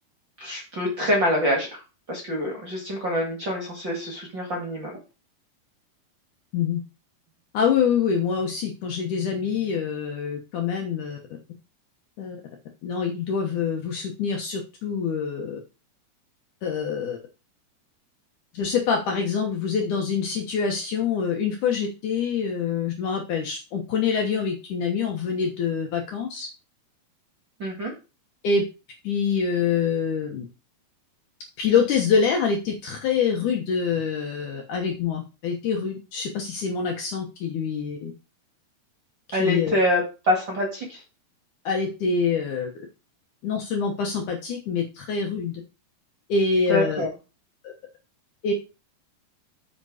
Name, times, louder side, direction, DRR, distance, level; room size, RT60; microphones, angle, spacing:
voice 1, 0.4-1.7 2.1-5.0 27.6-27.9 39.3-41.0 46.7-47.1, left 1 dB, 40° right, 0 dB, 1.9 m, -25 dB
voice 2, 7.5-11.2 12.2-12.4 12.8-15.6 16.6-17.2 18.5-26.5 28.4-28.6 29.0-30.5 31.6-38.1 39.3-39.7 41.6-42.7 43.4-45.5 46.3-47.0 47.6-47.7 48.4-48.5, left 6 dB, 65° left, 2 dB, 2.2 m, -25 dB
8.1 x 5.4 x 4.9 m, 0.30 s
omnidirectional pair, 4.7 m